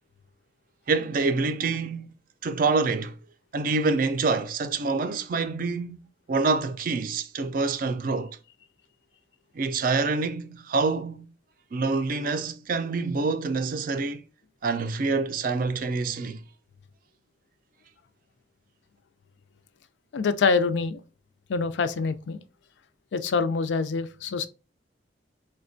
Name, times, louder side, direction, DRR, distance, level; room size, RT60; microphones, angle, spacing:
voice 1, 0.9-2.1 2.4-3.2 3.5-8.4 9.5-11.3 11.7-14.2 14.6-16.4, right 4 dB, 50° right, 0.4 m, -26 dB
voice 2, 20.1-21.0 21.5-22.4 23.1-24.5, left 4 dB, 85° left, 0.4 m, -25 dB
4.8 x 2.2 x 2.5 m
head